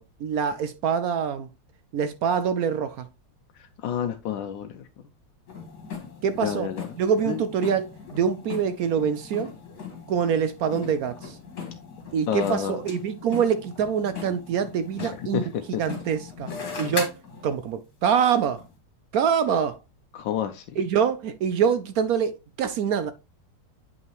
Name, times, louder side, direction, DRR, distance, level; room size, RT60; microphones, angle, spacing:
voice 1, 0.0-1.5 1.9-3.1 6.2-6.7 7.0-9.5 10.1-11.4 12.1-15.4 15.8-16.5 16.8-17.1 17.4-18.6 19.1-19.8 20.8-23.1, right 7 dB, 70° right, 0.9 m, -25 dB
voice 2, 3.6-4.9 6.4-6.9 7.3-7.4 12.3-12.8 15.0-15.8 16.8-16.9 20.1-20.6, left 9 dB, 90° left, 1.4 m, -30 dB
sound 1, 5.5-17.7 18.6-18.7, left 5 dB, 55° left, 2.5 m, -39 dB
8.1 x 5.5 x 3.1 m
omnidirectional pair, 2.0 m